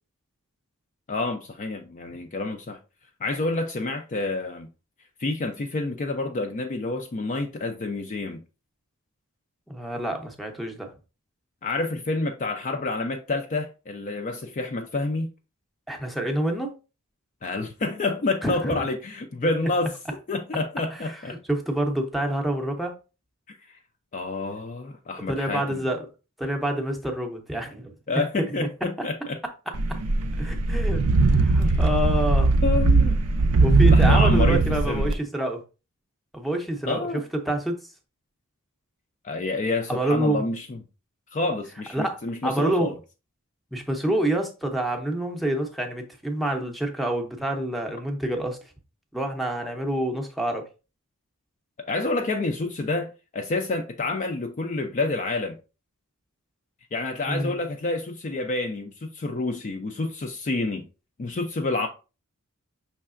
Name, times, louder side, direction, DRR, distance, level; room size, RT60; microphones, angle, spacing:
voice 1, 1.1-2.8 3.2-4.7 5.2-8.4 11.6-15.3 17.4-19.9 20.3-21.4 23.5-23.6 24.1-25.8 28.1-29.4 31.6-31.8 32.6-33.2 33.9-34.6 34.9-35.1 36.9-37.2 39.2-40.8 41.3-42.9 51.8-55.6 56.9-60.8 61.2-61.9, left 3 dB, 35° left, 0.4 m, -28 dB
voice 2, 9.7-10.9 15.9-16.7 18.4-18.9 20.9-22.9 25.3-26.1 26.4-27.9 28.6-28.7 30.4-32.6 33.6-35.6 36.3-37.8 39.9-40.5 41.9-42.9 43.7-48.6 49.1-50.6 57.3-57.5, right 1 dB, ahead, 0.7 m, -27 dB
sound 1, 29.7-35.1, right 3 dB, 75° right, 0.5 m, -19 dB
5.6 x 3.2 x 2.5 m
head